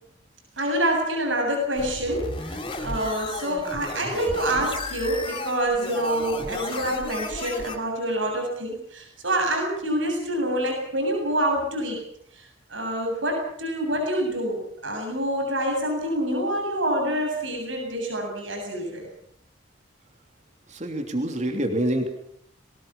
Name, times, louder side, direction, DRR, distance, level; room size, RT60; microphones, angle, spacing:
voice 1, 0.6-12.0 12.3-19.1, right 1 dB, 85° right, 2 dB, 7.8 m, -27 dB
sound 1, 1.8-7.8, left 2 dB, 25° left, 3.8 m, -33 dB
voice 2, 20.7-22.1, right 1 dB, 40° right, 5 dB, 3.2 m, -26 dB
23.0 x 20.0 x 7.1 m, 0.69 s
head